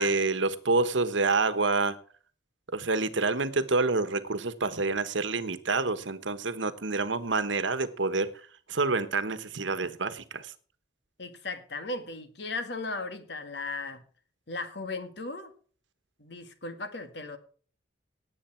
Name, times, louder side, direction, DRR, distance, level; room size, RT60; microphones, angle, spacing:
voice 1, 0.0-2.0 2.7-10.5, right 3 dB, 80° right, 13 dB, 1.2 m, -28 dB
voice 2, 11.2-14.0 14.5-15.5 16.2-17.4, left 3 dB, 60° left, 9 dB, 1.9 m, -36 dB
18.0 x 8.5 x 4.5 m, 0.42 s
head